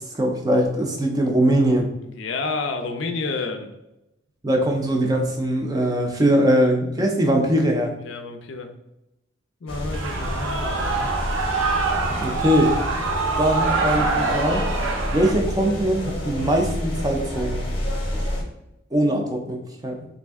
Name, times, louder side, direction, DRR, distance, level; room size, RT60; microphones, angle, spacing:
voice 1, 0.1-1.9 4.4-7.9 12.1-12.7 13.4-14.6 15.1-17.7 18.9-19.9, right 1 dB, 20° right, 2 dB, 0.4 m, -21 dB
voice 2, 2.0-3.7 8.0-8.7 9.6-11.0, left 3 dB, 70° left, 6 dB, 0.4 m, -30 dB
sound 1, 9.7-18.4, equal, 25° left, 0.8 m, -29 dB
Shout / Cheering, 9.9-15.3, right 4 dB, 80° right, 0.6 m, -25 dB
3.2 x 2.5 x 3.4 m, 0.89 s
head